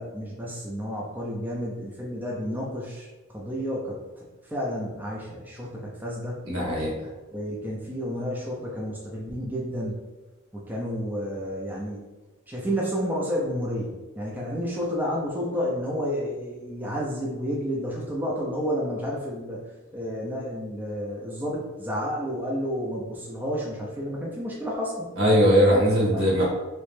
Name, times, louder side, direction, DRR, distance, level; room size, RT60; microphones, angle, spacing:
voice 1, 0.0-3.1 3.3-6.4 7.3-9.9 10.5-12.0 12.5-19.6 19.9-25.1 26.1-26.4, equal, 10° right, -4 dB, 0.5 m, -31 dB
voice 2, 6.4-6.9 25.2-26.4, equal, 70° right, -4 dB, 1.4 m, -20 dB
3.2 x 3.0 x 3.2 m, 1.2 s
head